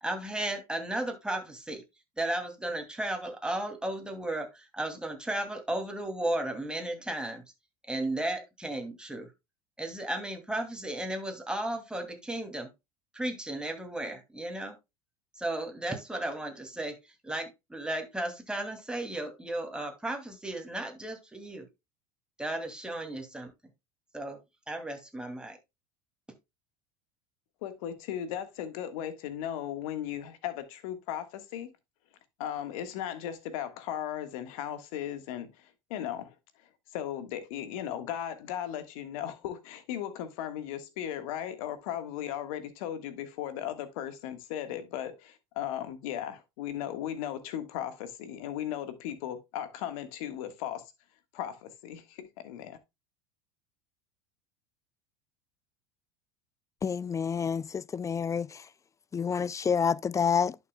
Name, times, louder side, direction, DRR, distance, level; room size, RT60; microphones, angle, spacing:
voice 1, 0.0-1.8 2.2-7.4 7.9-9.3 9.8-12.7 13.1-14.7 15.4-17.0 17.2-21.7 22.4-23.5 24.1-24.4 24.7-25.6, right 1 dB, 5° right, 2.5 m, -34 dB
voice 2, 27.6-31.7 32.4-36.3 36.9-50.8 51.3-52.8, left 10 dB, 70° left, 1.5 m, -37 dB
voice 3, 56.8-58.6 59.1-60.6, left 6 dB, 15° left, 0.3 m, -28 dB
11.0 x 6.1 x 2.2 m
hypercardioid pair, 95°, 18 cm